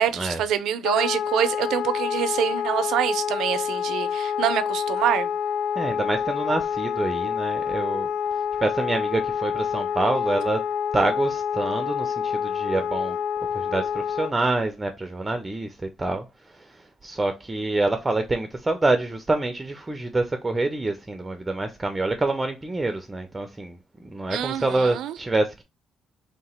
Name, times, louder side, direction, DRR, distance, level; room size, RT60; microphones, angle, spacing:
voice 1, 0.0-5.3 24.3-25.2, right 10 dB, 85° right, 0.5 m, -25 dB
Wind instrument woodwind instrument, 0.8-14.3, left 8 dB, 80° left, 0.3 m, -27 dB
voice 2, 5.8-8.1 8.6-10.6 10.9-13.2 13.5-15.7 16.0-16.2 17.0-23.8 24.0-25.6, right 2 dB, 20° right, 0.5 m, -26 dB
3.2 x 2.9 x 4.2 m
cardioid pair, 90°, 0 cm